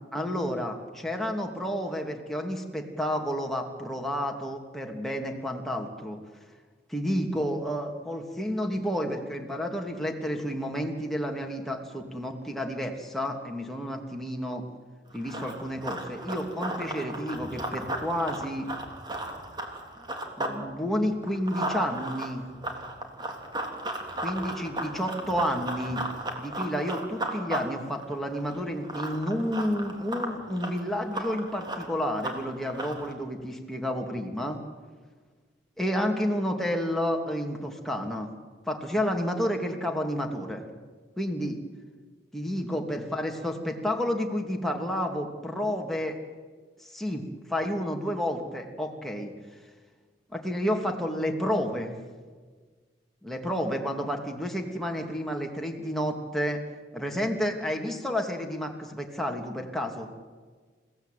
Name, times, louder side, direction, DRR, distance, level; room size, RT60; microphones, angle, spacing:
voice 1, 0.1-6.2 6.9-14.6 15.1-18.7 20.4-22.4 24.2-26.0 26.4-34.6 35.8-38.3 38.7-40.6 41.2-41.6 42.3-46.2 46.8-49.3 50.3-52.0 53.2-56.6 56.9-60.1, equal, ahead, 1 dB, 2.7 m, -30 dB
Run, 15.1-20.6 20.9-33.1, right 1 dB, 25° right, 3.3 m, -35 dB
29.0 x 17.0 x 9.2 m, 1.5 s
head